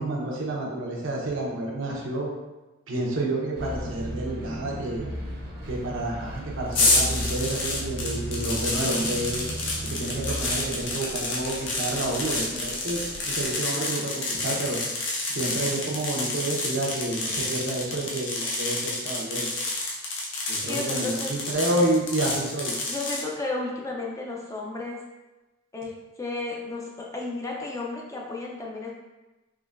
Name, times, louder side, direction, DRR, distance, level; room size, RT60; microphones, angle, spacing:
voice 1, 0.0-2.3 2.9-5.1 5.7-9.5 9.8-14.8 15.3-19.5 20.5-22.7, right 1 dB, 80° right, -3 dB, 0.8 m, -29 dB
Bus, 3.5-13.5, equal, 50° right, 0.7 m, -36 dB
sound 1, 6.7-23.2, left 2 dB, 65° left, 0.7 m, -29 dB
voice 2, 20.6-21.3 22.9-25.0 25.7-25.9 26.2-28.9, left 2 dB, 15° left, -2 dB, 0.4 m, -33 dB
3.7 x 3.0 x 2.5 m, 1.1 s
head